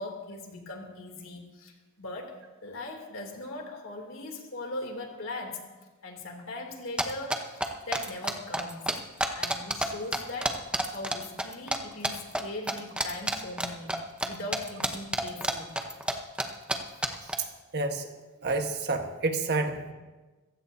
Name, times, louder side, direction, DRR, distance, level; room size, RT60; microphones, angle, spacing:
voice 1, 0.0-1.7 2.0-5.6 6.0-8.9 9.3-10.6 10.9-13.9 14.2-15.7, left 2 dB, 65° left, 1 dB, 3.0 m, -39 dB
sound 1, 7.0-9.9 10.1-11.8 12.0-12.4 12.7-14.3 14.5-16.1 16.4-16.5 16.7-16.8 17.0-17.3, right 1 dB, 5° right, 0.9 m, -28 dB
voice 2, 17.2-18.1 18.4-19.9, right 3 dB, 50° right, 4 dB, 1.4 m, -30 dB
26.0 x 15.5 x 2.8 m, 1.2 s
head